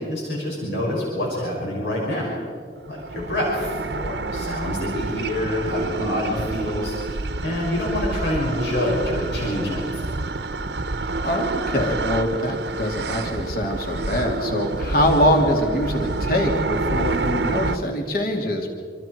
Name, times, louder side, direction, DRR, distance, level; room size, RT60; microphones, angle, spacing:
voice 1, 0.0-2.3 2.9-10.1, left 1 dB, 80° left, -3 dB, 6.1 m, -27 dB
sound 1, 2.8-17.8, right 3 dB, 70° right, 0.9 m, -28 dB
voice 2, 6.0-6.4 11.2-18.7, left 1 dB, 55° left, 1 dB, 2.8 m, -23 dB
27.0 x 25.5 x 4.7 m, 2.1 s
head